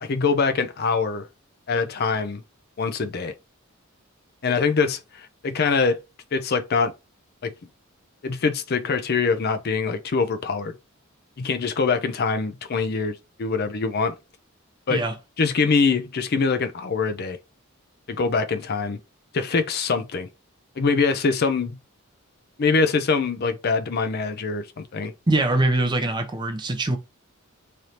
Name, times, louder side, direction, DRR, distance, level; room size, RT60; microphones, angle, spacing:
voice 1, 0.0-1.3 1.7-2.4 2.8-3.3 4.4-6.0 6.3-6.9 7.4-7.5 8.2-10.8 11.4-14.2 14.9-15.0 15.4-17.4 18.1-19.0 19.3-20.3 20.8-21.7 22.6-25.1, left 4 dB, 45° left, 0.5 m, -24 dB
voice 2, 25.3-27.0, right 2 dB, 20° right, 0.6 m, -22 dB
3.3 x 2.7 x 4.2 m
head